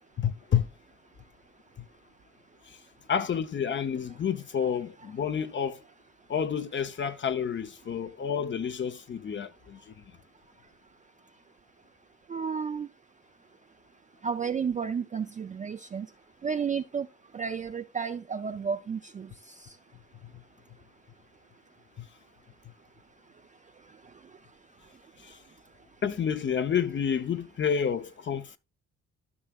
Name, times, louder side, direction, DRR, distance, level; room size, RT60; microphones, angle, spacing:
voice 1, 0.2-0.7 3.1-5.8 6.3-9.8 22.0-22.1 25.2-25.4 26.0-28.6, left 7 dB, 40° left, 0.6 m, -29 dB
voice 2, 12.3-12.9 14.2-16.1 16.4-17.1 17.3-19.3, right 6 dB, 25° right, 0.4 m, -32 dB
13.5 x 5.7 x 2.3 m
cardioid pair, 90°, 30 cm